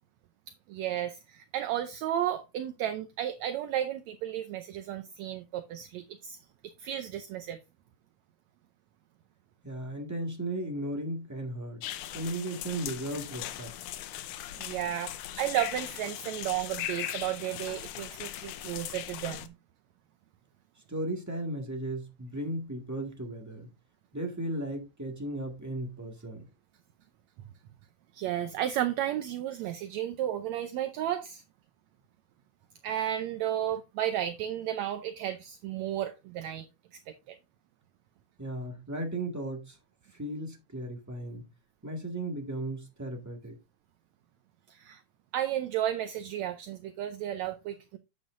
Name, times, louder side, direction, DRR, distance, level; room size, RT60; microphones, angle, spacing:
voice 1, 0.7-6.4 6.8-7.6 14.6-19.5 28.1-31.4 32.8-37.4 44.7-45.0 45.3-48.0, right 11 dB, 75° right, 1.8 m, -33 dB
voice 2, 9.6-11.8 12.1-13.7 20.9-23.7 24.1-26.5 38.4-39.8 40.1-41.4 41.8-43.6, right 1 dB, 10° right, 0.9 m, -36 dB
sound 1, 11.8-19.5, left 12 dB, 80° left, 2.1 m, -39 dB
8.9 x 8.1 x 2.6 m
omnidirectional pair, 3.6 m